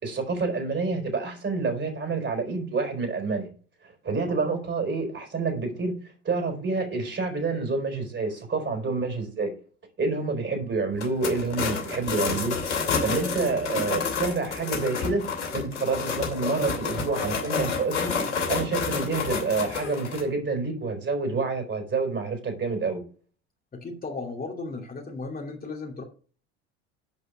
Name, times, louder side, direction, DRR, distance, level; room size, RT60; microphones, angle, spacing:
voice 1, 0.0-3.5 3.8-5.9 6.2-9.5 10.0-15.3 15.5-18.1 18.5-23.0, right 4 dB, 35° right, 4.9 m, -28 dB
sound 1, 10.9-20.2, left 5 dB, 90° left, 3.0 m, -29 dB
voice 2, 23.7-26.0, left 3 dB, 25° left, 2.6 m, -35 dB
9.0 x 5.5 x 6.6 m
hypercardioid pair, 75°, 34 cm